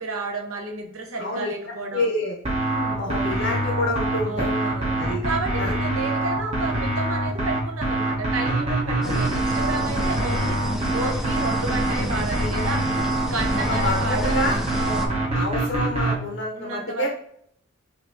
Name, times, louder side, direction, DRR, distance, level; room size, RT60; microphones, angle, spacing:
voice 1, 0.0-2.1 2.6-3.1 4.3-4.9 5.2-12.9 13.3-15.4 16.6-17.1, right 3 dB, 70° right, 2 dB, 0.8 m, -32 dB
voice 2, 1.2-1.5 1.9-2.4 3.0-4.5 5.0-5.2 5.5-5.7 9.0-9.2 13.7-14.6 15.3-17.1, left 1 dB, 50° left, 0 dB, 0.6 m, -27 dB
sound 1, 2.4-16.2, right 2 dB, 30° right, 0.9 m, -25 dB
sound 2, 9.0-15.1, equal, ahead, 0.3 m, -30 dB
5.4 x 2.7 x 2.6 m, 0.67 s
head